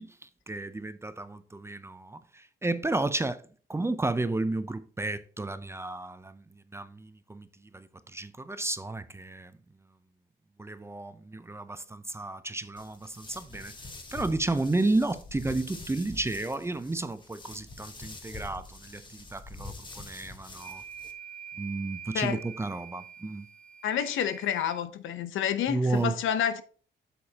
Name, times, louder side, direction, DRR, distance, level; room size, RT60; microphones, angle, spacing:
voice 1, 0.0-3.4 3.7-6.4 6.7-7.5 7.7-9.5 10.6-13.7 14.1-20.8 21.6-23.5 25.7-26.2, right 2 dB, 15° right, 0.5 m, -32 dB
sound 1, 12.8-21.1, left 3 dB, 25° left, 1.4 m, -45 dB
sound 2, 20.5-24.8, right 8 dB, 5° left, 1.8 m, -45 dB
voice 2, 23.8-26.6, left 9 dB, 80° left, 0.8 m, -29 dB
8.4 x 6.9 x 2.8 m
cardioid pair, 90°, 20 cm